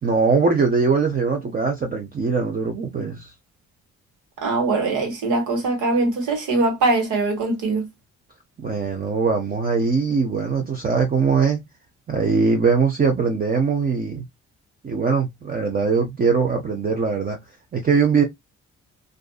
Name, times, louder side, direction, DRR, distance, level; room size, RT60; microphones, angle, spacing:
voice 1, 0.0-3.3 8.6-11.6 12.1-14.2 14.8-17.4 17.7-18.2, right 5 dB, 30° right, 0.7 m, -21 dB
voice 2, 4.4-7.9, right 3 dB, 80° right, 1.4 m, -22 dB
2.5 x 2.5 x 2.2 m
cardioid pair, 90°, 30 cm